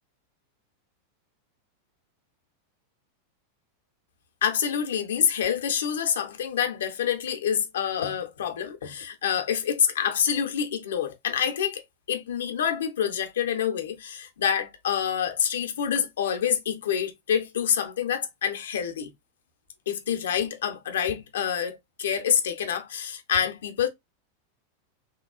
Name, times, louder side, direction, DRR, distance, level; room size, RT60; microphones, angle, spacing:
voice 1, 4.4-19.1 19.9-23.9, left 8 dB, 60° left, 0.6 m, -27 dB
3.1 x 2.3 x 2.2 m
figure-of-eight pair, 90°, 0 cm